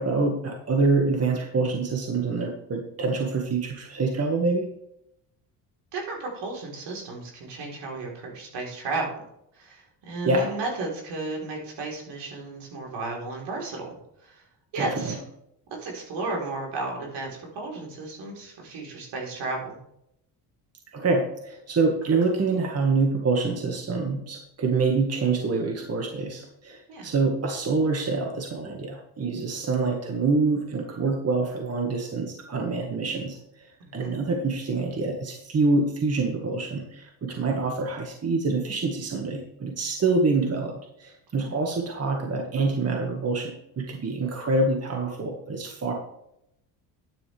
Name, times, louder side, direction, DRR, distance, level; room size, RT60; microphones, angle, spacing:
voice 1, 0.0-4.7 10.2-10.5 14.8-15.2 20.9-33.7 33.9-40.7 41.0-45.9, right 3 dB, 35° right, 1 dB, 1.9 m, -26 dB
voice 2, 5.9-9.1 9.5-13.9 14.2-14.4 14.7-15.2 15.8-19.8 26.9-27.1 33.8-34.2 41.4-41.6, right 3 dB, 70° right, 0 dB, 4.2 m, -34 dB
10.5 x 9.8 x 3.5 m, 0.77 s
cardioid pair, 95°, 43 cm